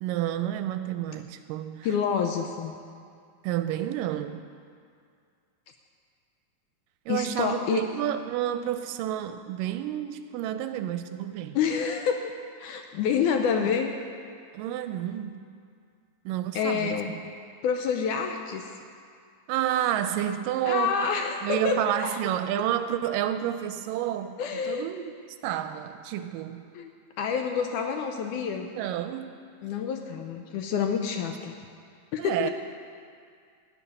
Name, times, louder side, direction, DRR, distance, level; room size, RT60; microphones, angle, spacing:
voice 1, 0.0-1.9 3.4-4.5 7.1-11.6 14.5-15.5 16.3-17.2 19.5-21.0 21.4-25.1 25.4-26.7 28.8-29.4 32.2-32.5, right 11 dB, 80° right, 10 dB, 2.1 m, -30 dB
voice 2, 1.8-2.7 7.1-7.9 11.5-12.3 12.6-13.9 16.5-17.1 17.6-18.7 20.6-22.2 24.4-24.9 26.7-26.9 27.2-28.7 29.6-31.5 32.1-32.5, left 6 dB, 80° left, 4 dB, 1.9 m, -28 dB
15.5 x 5.6 x 9.9 m, 2.2 s
omnidirectional pair, 4.1 m